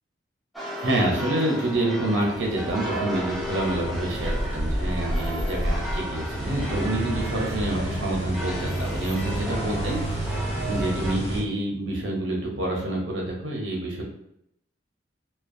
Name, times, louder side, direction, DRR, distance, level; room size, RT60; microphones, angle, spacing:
sound 1, 0.5-11.1, equal, ahead, 0.4 m, -35 dB
voice 1, 0.8-10.3 10.6-14.0, right 1 dB, 90° right, -1 dB, 0.7 m, -27 dB
sound 2, 2.3-11.4, right 1 dB, 70° left, 1.5 m, -30 dB
2.5 x 2.2 x 2.5 m, 0.76 s
head